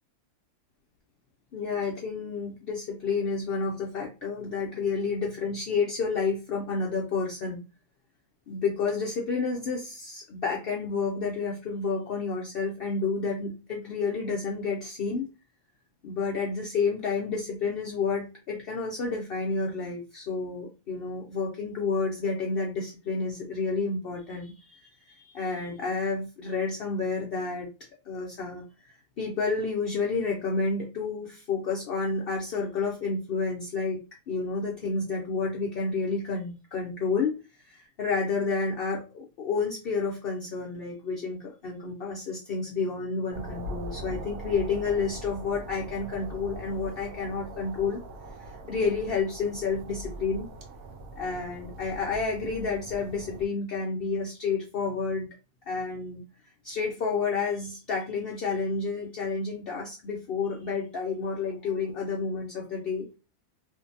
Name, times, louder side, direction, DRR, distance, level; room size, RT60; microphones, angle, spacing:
voice 1, 1.5-7.6 8.5-15.3 16.0-27.7 28.1-34.0 34.3-37.4 37.6-48.0 48.4-50.5 51.2-55.3 55.7-56.2 56.6-63.1, left 4 dB, 70° left, -1 dB, 0.5 m, -30 dB
sound 1, 43.3-53.5, right 1 dB, 80° right, 1.1 m, -41 dB
2.7 x 2.5 x 2.5 m, 0.30 s
omnidirectional pair, 1.6 m